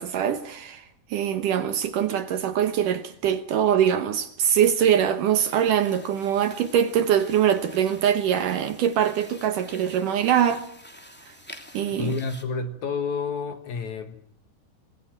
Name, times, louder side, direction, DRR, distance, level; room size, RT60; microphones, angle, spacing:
voice 1, 0.0-10.6 11.3-11.4 11.7-12.1, right 9 dB, 65° right, 2.4 m, -23 dB
sound 1, 5.4-12.4, equal, 5° left, 2.2 m, -48 dB
voice 2, 12.0-14.2, left 4 dB, 60° left, 2.2 m, -29 dB
26.0 x 20.0 x 9.0 m
omnidirectional pair, 4.6 m